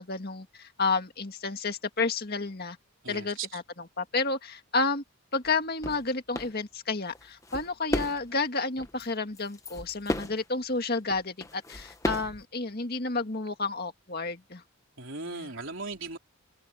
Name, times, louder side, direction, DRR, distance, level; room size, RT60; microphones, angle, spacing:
voice 1, 0.0-2.8 3.1-5.0 5.3-14.6 15.4-15.5, left 3 dB, 45° left, 2.0 m, -31 dB
voice 2, 3.0-3.5 15.0-16.2, right 4 dB, 55° right, 4.6 m, -37 dB
sound 1, 5.4-5.5 5.8-6.1 6.4-6.5 7.1-8.5 8.8-9.1 9.4-10.4 11.1-12.4, left 1 dB, 15° left, 1.1 m, -34 dB
head